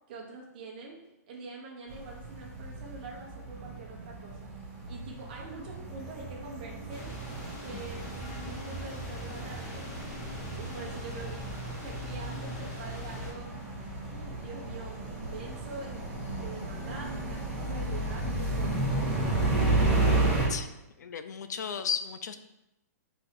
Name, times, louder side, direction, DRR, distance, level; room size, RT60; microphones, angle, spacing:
voice 1, 0.1-1.0 1.3-4.5 4.9-7.1 7.5-9.9 10.3-13.5 14.1-16.0 16.4-19.5, right 3 dB, 35° right, -1 dB, 0.8 m, -45 dB
sound 1, 1.9-20.5, right 2 dB, ahead, 1.5 m, -33 dB
sound 2, 6.9-13.3, equal, 25° left, 1.0 m, -41 dB
voice 2, 7.7-8.1 20.5-20.7 21.0-22.4, left 7 dB, 80° left, 10 dB, 0.4 m, -35 dB
4.1 x 2.7 x 4.2 m, 0.90 s
hypercardioid pair, 180°, 9 cm